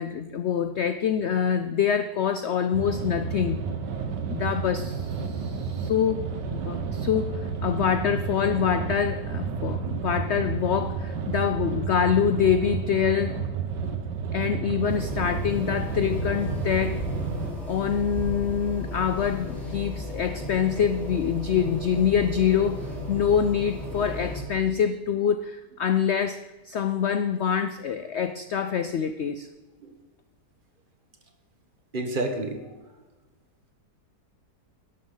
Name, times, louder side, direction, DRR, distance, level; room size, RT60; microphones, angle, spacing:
voice 1, 0.0-3.6 4.3-6.2 6.5-13.3 14.3-17.0 17.7-22.8 23.1-29.5, left 8 dB, 85° left, 10 dB, 0.6 m, -25 dB
sound 1, 2.7-17.5, right 5 dB, 80° right, 1.7 m, -31 dB
sound 2, 14.8-24.4, left 1 dB, ahead, 4.0 m, -34 dB
voice 2, 31.9-32.6, right 2 dB, 30° right, 5 dB, 1.4 m, -28 dB
12.5 x 11.0 x 3.9 m, 1.2 s
omnidirectional pair, 1.9 m